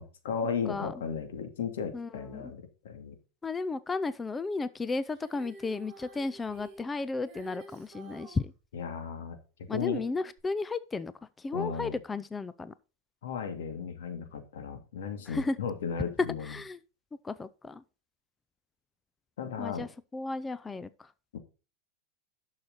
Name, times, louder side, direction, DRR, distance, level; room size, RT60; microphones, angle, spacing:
voice 1, 0.0-3.2 8.7-9.4 9.7-10.0 11.5-12.0 13.2-16.6 19.4-19.9 21.3-21.4, left 6 dB, 90° left, 2.4 m, -35 dB
voice 2, 1.9-2.5 3.4-8.5 9.7-11.1 11.4-12.7 15.3-15.6 16.4-16.8 17.2-17.8 19.6-21.1, left 3 dB, 10° left, 0.4 m, -34 dB
Female singing, 5.1-8.4 10.4-10.5, right 3 dB, 25° right, 5.1 m, -49 dB
11.5 x 6.5 x 4.0 m
supercardioid pair, 155°, 0 cm